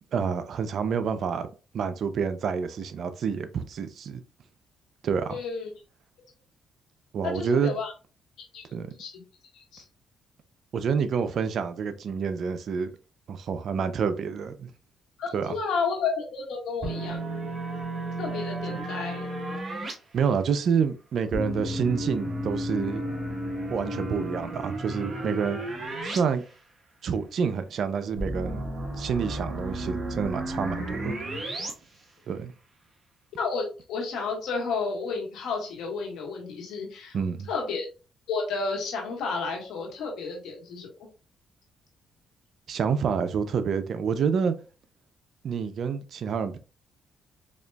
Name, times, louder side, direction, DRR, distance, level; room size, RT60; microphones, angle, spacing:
voice 1, 0.1-1.5 1.7-4.2 5.0-5.4 7.1-7.8 8.7-8.9 10.7-12.9 13.3-14.7 15.3-15.6 20.1-23.0 23.7-25.6 26.0-26.4 27.0-28.6 29.0-31.1 32.3-32.5 37.1-37.5 42.7-44.5 45.4-46.6, right 6 dB, 60° right, 0.5 m, -28 dB
voice 2, 5.3-5.7 7.2-7.9 8.5-8.7 9.0-9.2 9.5-9.8 15.2-17.2 18.2-19.3 33.4-37.2 37.5-37.9 38.3-40.9, left 4 dB, 80° left, 1.3 m, -31 dB
sound 1, 16.8-19.9 21.3-26.2 26.5-26.6 28.2-31.7, right 1 dB, 35° right, 1.1 m, -33 dB
4.2 x 2.9 x 2.2 m
cardioid pair, 90°, 0 cm